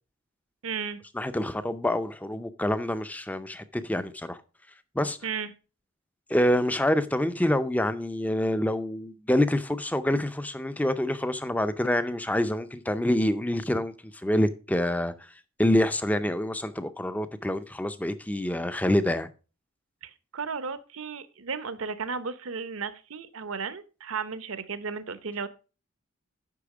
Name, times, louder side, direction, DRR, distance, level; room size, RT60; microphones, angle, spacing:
voice 1, 0.6-1.0 5.2-5.5 20.0-25.5, right 5 dB, 70° right, 0.8 m, -34 dB
voice 2, 1.1-4.4 4.9-5.2 6.3-15.3 15.6-19.3, left 1 dB, 5° left, 0.5 m, -26 dB
8.5 x 5.8 x 4.8 m
head